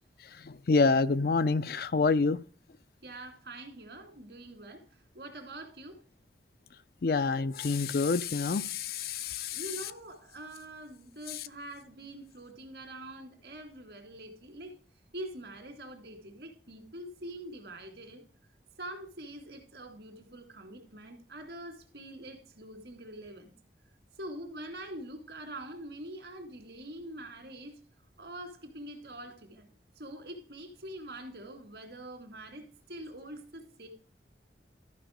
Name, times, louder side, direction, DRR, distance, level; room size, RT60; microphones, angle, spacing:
voice 1, 0.4-2.4 7.0-9.6, left 4 dB, 55° left, 0.4 m, -27 dB
voice 2, 3.0-4.9 5.1-6.0 9.5-14.7 15.1-18.2 18.8-23.5 24.2-27.8 28.2-29.7 30.0-33.9, right 1 dB, 70° right, 2.4 m, -44 dB
13.0 x 5.3 x 5.1 m
head